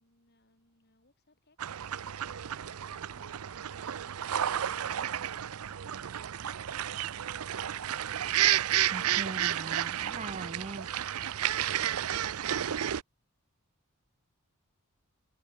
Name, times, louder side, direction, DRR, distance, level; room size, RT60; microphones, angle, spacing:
voice 1, 0.0-8.1, left 1 dB, 50° left, 7.2 m, -68 dB
sound 1, 1.6-13.0, right 11 dB, 85° right, 0.5 m, -32 dB
voice 2, 8.9-10.9, right 3 dB, 30° right, 0.7 m, -41 dB
head